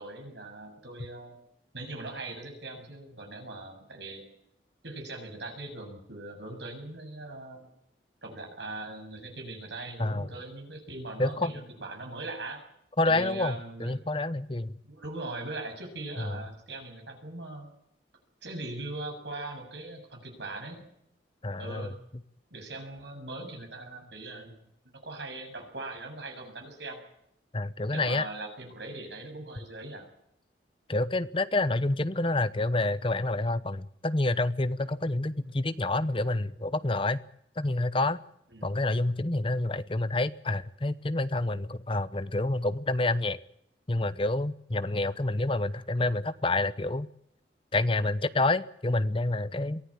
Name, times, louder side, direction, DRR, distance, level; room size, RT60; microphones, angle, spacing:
voice 1, 0.0-1.4 1.7-4.2 4.8-7.7 8.2-12.6 13.0-14.0 14.8-17.7 18.4-20.9 21.6-22.0 22.5-24.5 24.9-27.0 27.9-30.1 38.5-38.8, right 2 dB, 75° right, 3 dB, 7.3 m, -40 dB
voice 2, 11.2-11.5 13.0-14.7 16.2-16.3 21.4-21.9 27.5-28.3 30.9-37.2 37.6-38.2 38.6-43.4 43.9-47.1 47.7-49.8, left 2 dB, 30° left, 14 dB, 0.8 m, -28 dB
23.0 x 15.0 x 8.7 m, 0.75 s
head